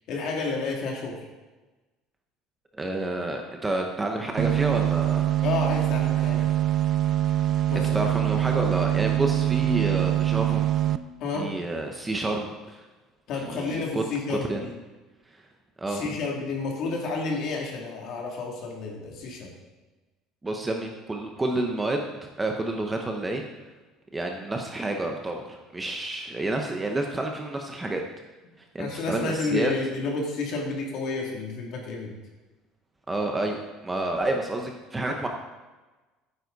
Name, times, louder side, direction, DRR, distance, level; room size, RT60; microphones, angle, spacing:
voice 1, 0.1-1.2 5.4-6.5 7.7-7.9 11.2-11.5 13.3-14.7 15.9-19.5 28.8-32.1, left 4 dB, 45° left, 0 dB, 2.7 m, -30 dB
voice 2, 2.7-5.3 7.9-10.6 11.3-12.8 13.5-14.0 14.3-14.6 15.8-16.0 20.4-23.5 24.1-28.0 28.7-29.7 33.1-35.3, right 2 dB, 10° right, 2 dB, 0.8 m, -29 dB
sound 1, 4.4-11.0, right 13 dB, 35° right, 0.4 m, -24 dB
14.0 x 9.7 x 4.0 m, 1.2 s
cardioid pair, 170°, 0 cm